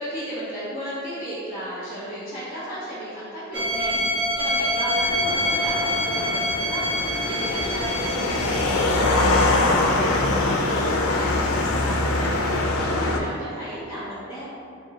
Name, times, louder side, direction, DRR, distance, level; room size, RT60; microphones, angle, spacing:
voice 1, 0.0-14.5, equal, 10° right, -14 dB, 0.7 m, -34 dB
sound 1, 3.5-10.1 12.5-12.6, equal, 55° right, 1.0 m, -26 dB
sound 2, 5.0-13.2, left 2 dB, 85° left, 0.4 m, -23 dB
4.0 x 3.5 x 2.8 m, 2.5 s
head